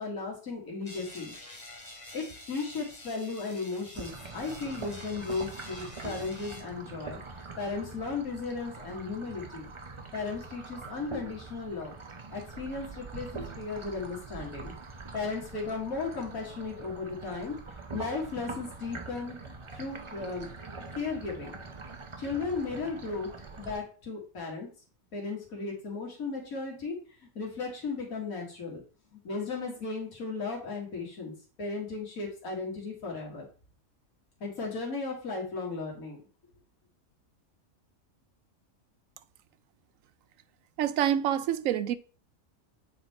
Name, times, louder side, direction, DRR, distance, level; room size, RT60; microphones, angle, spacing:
voice 1, 0.0-1.3 2.1-7.2 7.6-9.7 10.1-11.9 12.3-14.7 15.1-17.6 17.9-20.5 20.9-21.5 22.2-23.3 23.6-24.7 25.1-27.0 27.2-28.8 29.1-33.5 34.4-36.2, left 4 dB, 80° left, 2.2 m, -35 dB
sound 1, 0.8-6.6, left 2 dB, 25° left, 1.8 m, -48 dB
sound 2, 3.9-23.8, right 3 dB, 30° right, 0.6 m, -44 dB
voice 2, 40.8-41.9, right 10 dB, 75° right, 0.9 m, -27 dB
8.5 x 3.7 x 4.2 m
omnidirectional pair, 1.5 m